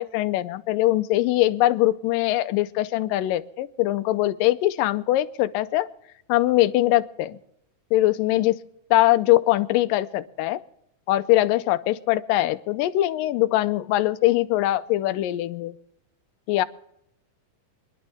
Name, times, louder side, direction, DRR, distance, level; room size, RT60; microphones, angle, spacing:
voice 1, 0.0-5.9 6.3-7.4 7.9-8.6 8.9-10.6 11.1-15.7 16.5-16.7, left 16 dB, 90° left, 13 dB, 2.4 m, -22 dB
25.5 x 11.5 x 3.5 m, 0.77 s
omnidirectional pair, 3.8 m